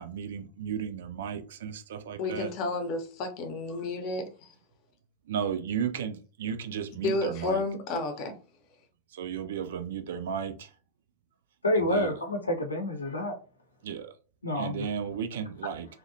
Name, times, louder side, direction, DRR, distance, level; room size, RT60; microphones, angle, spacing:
voice 1, 0.0-2.5 5.3-7.6 9.1-10.7 11.8-12.1 13.8-14.1 14.6-15.9, right 8 dB, 60° right, 0.3 m, -34 dB
voice 2, 2.2-4.5 7.0-8.3, left 2 dB, 40° left, 0.6 m, -31 dB
voice 3, 11.6-13.4 14.4-14.9, left 1 dB, 80° left, 0.6 m, -28 dB
2.7 x 2.1 x 2.5 m
figure-of-eight pair, 90°, 0 cm